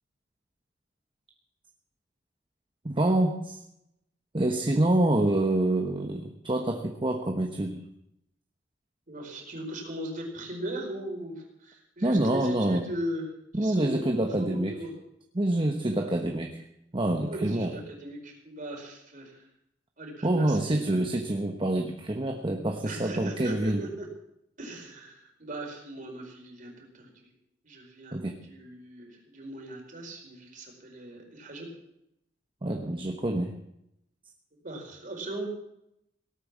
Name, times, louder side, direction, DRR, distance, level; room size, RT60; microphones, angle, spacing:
voice 1, 2.8-3.6 4.3-7.8 12.0-12.9 13.5-14.7 15.3-16.6 16.9-17.7 20.2-23.8 28.1-28.4 32.6-33.5, right 1 dB, 25° right, 3 dB, 1.1 m, -26 dB
voice 2, 9.1-13.3 13.6-14.9 16.0-16.1 17.2-19.5 20.0-21.0 22.8-23.7 24.0-24.1 24.6-27.3 27.6-31.7 34.6-35.5, right 1 dB, 45° right, 1 dB, 4.7 m, -39 dB
18.0 x 8.9 x 7.4 m, 0.81 s
head